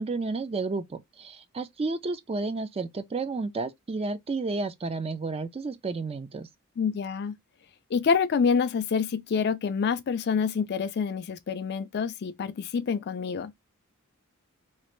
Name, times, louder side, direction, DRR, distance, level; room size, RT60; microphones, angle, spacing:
voice 1, 0.0-6.5, right 3 dB, 25° right, 0.3 m, -31 dB
voice 2, 6.8-7.3 7.9-13.5, left 6 dB, 50° left, 0.4 m, -27 dB
3.1 x 2.5 x 3.0 m
head